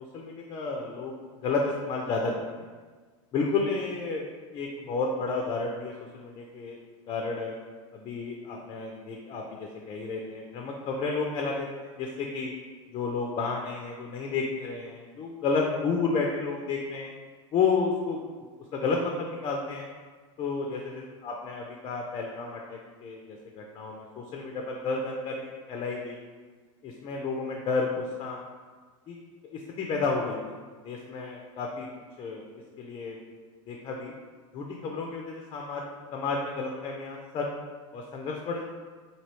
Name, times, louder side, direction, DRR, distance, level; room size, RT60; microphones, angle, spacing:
voice 1, 0.1-1.1 1.4-2.7 3.3-4.3 4.5-6.8 7.1-7.5 7.9-12.5 12.9-17.1 17.5-18.3 18.7-19.9 20.4-26.2 26.8-28.4 29.1-29.2 29.5-30.5 30.8-31.9 32.2-32.4 32.8-33.2 33.7-34.1 34.5-35.8 36.1-37.5 37.9-38.6, left 4 dB, 30° left, 1 dB, 0.3 m, -31 dB
3.0 x 2.7 x 2.9 m, 1.4 s
supercardioid pair, 120°, 18 cm